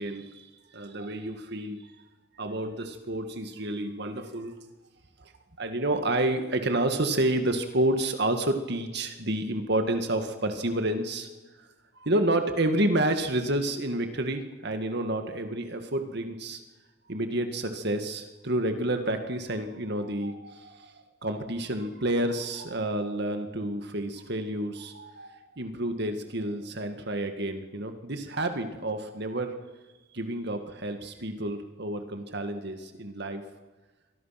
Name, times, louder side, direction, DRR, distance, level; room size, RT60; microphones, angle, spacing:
voice 1, 0.0-1.9 2.4-4.5 5.2-5.3 5.6-11.3 11.6-11.7 12.0-16.6 17.1-29.5 30.1-33.4, right 1 dB, 55° right, 7 dB, 2.0 m, -29 dB
29.0 x 24.0 x 5.9 m, 1.2 s
head